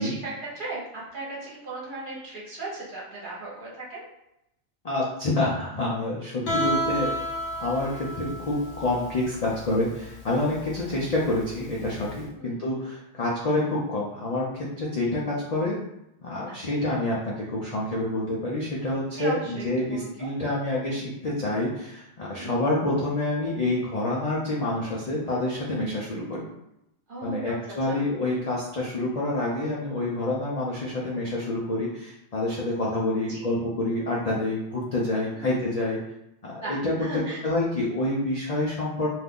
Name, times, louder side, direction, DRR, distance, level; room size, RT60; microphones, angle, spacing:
voice 1, 0.0-4.0 10.8-10.9 12.3-12.6 16.5-16.8 19.1-20.3 22.3-22.6 27.1-28.0 33.3-33.4 35.3-35.8 36.6-37.4, right 2 dB, 45° right, -7 dB, 1.0 m, -37 dB
voice 2, 4.8-7.1 7.6-15.8 16.2-26.5 27.2-36.0 36.4-36.9 37.4-39.1, left 2 dB, 50° left, -5 dB, 0.4 m, -27 dB
Guitar, 6.5-12.2, equal, 80° left, 1.1 m, -32 dB
2.6 x 2.4 x 3.5 m, 0.85 s
omnidirectional pair, 1.2 m